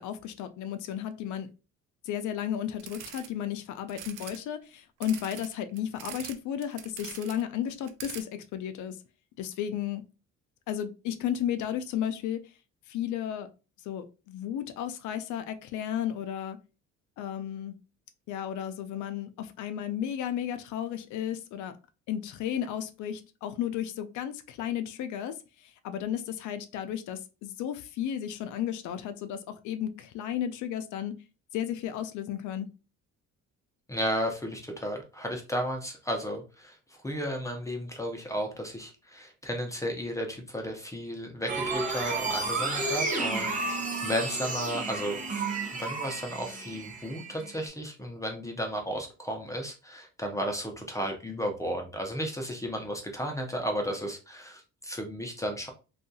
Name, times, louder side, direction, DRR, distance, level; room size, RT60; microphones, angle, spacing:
voice 1, 0.0-1.5 2.0-9.0 9.4-10.0 10.7-12.4 12.9-13.5 13.9-16.6 17.2-17.7 18.3-21.7 22.1-25.3 25.6-31.1 31.5-32.7, left 10 dB, 70° left, 10 dB, 0.5 m, -33 dB
sound 1, 2.8-3.3 3.9-4.4 5.0-6.3 6.6-7.4 7.7-8.2, right 10 dB, 85° right, 0.5 m, -43 dB
voice 2, 33.9-45.4 45.8-55.7, equal, 10° left, 2 dB, 0.4 m, -34 dB
sound 2, 41.5-47.7, right 3 dB, 25° right, 0.7 m, -32 dB
2.7 x 2.3 x 2.6 m, 0.31 s
cardioid pair, 125°, 31 cm